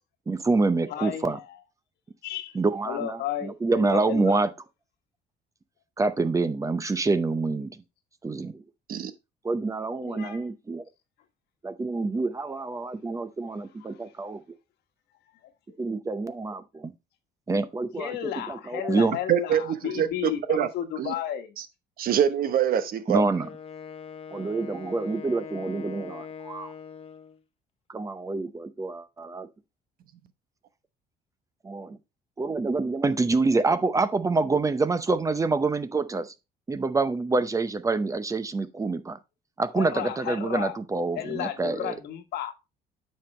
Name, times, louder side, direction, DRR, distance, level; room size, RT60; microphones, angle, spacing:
voice 1, 0.3-1.4 2.5-4.5 6.0-7.7 8.2-8.6 9.4-10.8 11.6-14.4 15.8-16.9 17.5-19.1 23.1-23.5 24.3-26.7 27.9-29.5 31.6-32.0 32.4-36.3 36.7-39.2 39.6-42.0, right 3 dB, 20° right, 0.7 m, -27 dB
voice 2, 0.9-1.6 2.2-2.6 2.8-4.4 10.0-10.4 13.8-14.0 18.0-21.6 39.7-40.8 41.1-42.5, left 11 dB, 75° left, 1.3 m, -33 dB
voice 3, 19.3-20.7 21.0-21.1 22.0-23.2, right 9 dB, 60° right, 1.0 m, -24 dB
Wind instrument woodwind instrument, 23.4-27.4, left 7 dB, 35° left, 0.8 m, -42 dB
8.8 x 5.3 x 3.2 m
cardioid pair, 110°, 17 cm